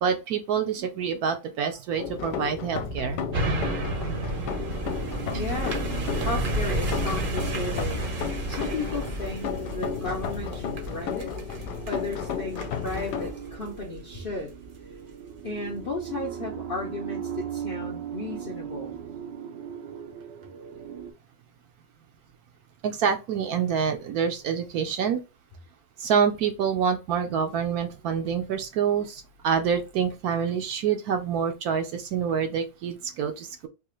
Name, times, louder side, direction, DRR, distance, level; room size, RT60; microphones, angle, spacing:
voice 1, 0.0-3.2 22.8-25.2 26.0-33.7, right 7 dB, 70° right, 1.0 m, -27 dB
sound 1, 2.0-13.3, left 7 dB, 75° left, 1.1 m, -34 dB
sound 2, 2.5-21.1, right 7 dB, 85° right, 1.4 m, -39 dB
sound 3, 3.3-14.8 15.2-15.3, right 1 dB, 45° right, 0.7 m, -32 dB
voice 2, 5.3-5.8 6.2-8.0 8.5-11.3 11.9-14.5 15.4-19.0, left 2 dB, 60° left, 0.5 m, -34 dB
3.8 x 2.4 x 3.0 m
omnidirectional pair, 1.9 m